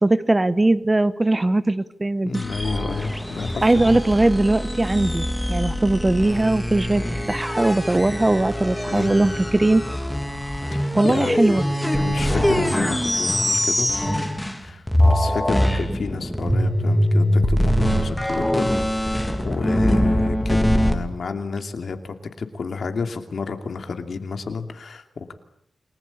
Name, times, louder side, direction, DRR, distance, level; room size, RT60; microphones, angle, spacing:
voice 1, 0.0-2.4 3.6-9.8 10.9-11.7 19.8-20.1, right 2 dB, 20° right, 15 dB, 1.1 m, -20 dB
voice 2, 2.2-4.0 8.9-9.3 10.7-11.6 12.0-13.9 14.6-25.3, left 4 dB, 70° left, 7 dB, 2.8 m, -31 dB
sound 1, 2.3-14.6 14.9-20.9, equal, 5° left, 2.9 m, -23 dB
29.5 x 20.0 x 8.6 m, 0.74 s
wide cardioid pair, 95°, 0 cm